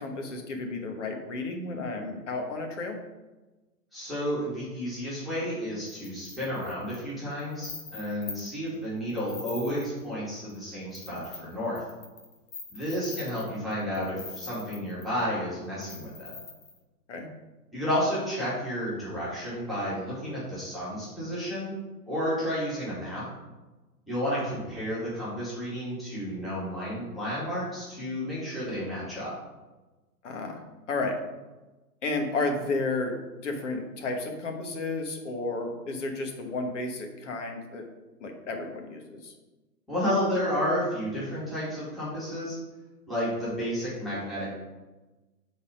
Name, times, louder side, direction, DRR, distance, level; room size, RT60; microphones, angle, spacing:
voice 1, 0.0-3.0 17.1-17.3 30.2-30.6 30.9-31.2 32.0-37.9 38.2-39.3, left 3 dB, 50° left, 3 dB, 1.3 m, -32 dB
voice 2, 3.9-11.8 12.7-16.3 17.7-21.7 22.1-23.2 24.1-29.3 39.9-42.6 43.1-44.5, equal, ahead, -11 dB, 2.1 m, -31 dB
sound 1, 5.9-8.7 9.1-10.1 10.5-10.6 10.9-15.2 15.8-16.8, left 4 dB, 30° left, 1.4 m, -43 dB
5.7 x 4.1 x 5.1 m, 1.2 s
figure-of-eight pair, 125°, 48 cm